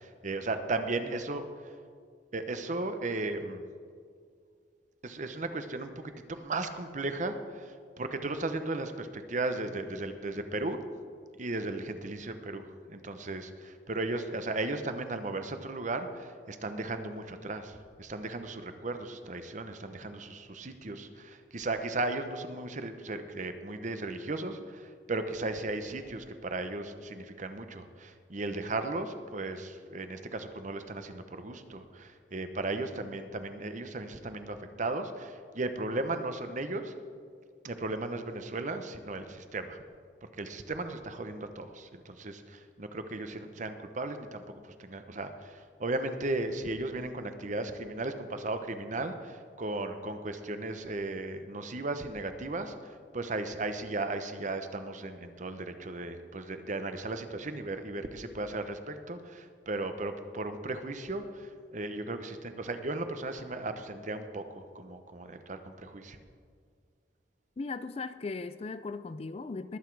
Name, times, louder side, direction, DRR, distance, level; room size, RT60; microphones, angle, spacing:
voice 1, 0.0-1.7 2.3-3.7 5.0-10.8 11.4-36.9 37.6-39.8 40.2-44.4 44.8-66.2, right 2 dB, 45° right, 8 dB, 0.9 m, -36 dB
voice 2, 67.6-69.8, left 3 dB, 35° left, 13 dB, 0.4 m, -37 dB
20.5 x 8.2 x 4.7 m, 2.1 s
head